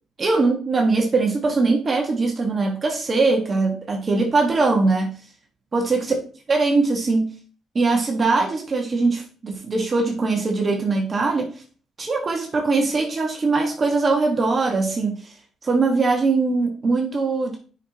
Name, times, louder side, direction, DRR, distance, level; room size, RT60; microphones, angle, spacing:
voice 1, 0.2-5.2 5.7-6.1 6.5-7.3 7.7-11.5 12.0-15.3 15.6-17.6, right 3 dB, 40° right, 1 dB, 1.3 m, -21 dB
8.2 x 5.5 x 2.8 m, 0.40 s
cardioid pair, 90°, 0 cm